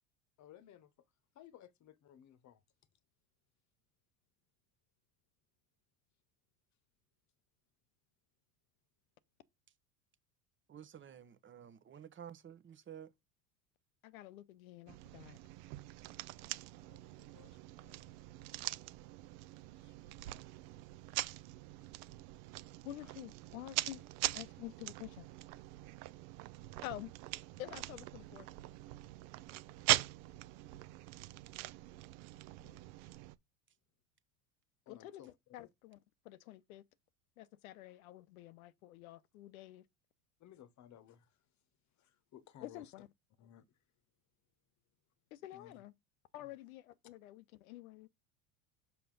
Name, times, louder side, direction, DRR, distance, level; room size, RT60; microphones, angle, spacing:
voice 1, 0.4-0.9 1.3-2.6 16.7-18.2 19.8-20.3 23.0-23.1 34.9-35.7 40.4-41.4 42.0-42.9 43.4-43.8 45.5-45.8 46.4-46.5, left 11 dB, 40° left, 1.0 m, -59 dB
voice 2, 10.7-13.1, right 9 dB, 30° right, 0.8 m, -52 dB
voice 3, 14.0-15.4 22.8-24.0 24.3-25.3 26.8-27.1 27.6-28.5 32.6-32.8 34.9-35.2 35.5-36.0 36.2-36.8 37.4-39.8 42.6-43.1 45.3-45.9 46.3-48.1, left 14 dB, 80° left, 0.7 m, -49 dB
sound 1, 14.9-33.4, right 18 dB, 60° right, 0.6 m, -42 dB
5.8 x 5.6 x 3.9 m
hypercardioid pair, 85°, 42 cm